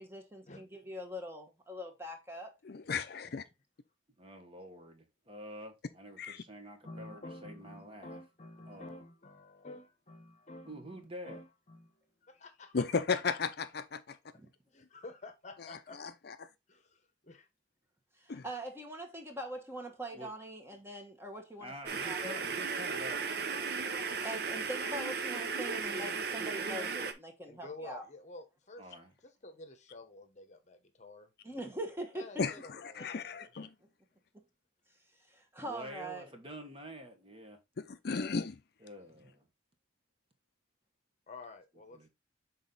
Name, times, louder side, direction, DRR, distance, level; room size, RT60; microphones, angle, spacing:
voice 1, 0.0-2.5 18.2-22.4 24.2-28.0 31.4-32.2 35.3-36.3, right 1 dB, 10° right, 1.2 m, -42 dB
voice 2, 2.6-3.4 6.2-6.4 12.7-14.2 16.0-16.3 18.3-18.4 32.4-33.7 37.8-38.6, left 5 dB, 55° left, 0.5 m, -35 dB
voice 3, 4.2-8.2 8.7-9.0 10.7-11.4 20.1-20.3 21.6-23.6 28.8-29.1 35.6-37.6 38.8-39.5 41.9-42.1, right 1 dB, 30° right, 1.3 m, -48 dB
voice 4, 6.8-12.8 14.7-16.0 16.7-17.5 27.4-28.9 29.2-31.3 32.1-33.5 41.3-42.1, left 2 dB, 35° left, 0.9 m, -50 dB
sound 1, 21.9-27.1, right 5 dB, 55° right, 0.8 m, -35 dB
6.2 x 4.1 x 3.8 m
head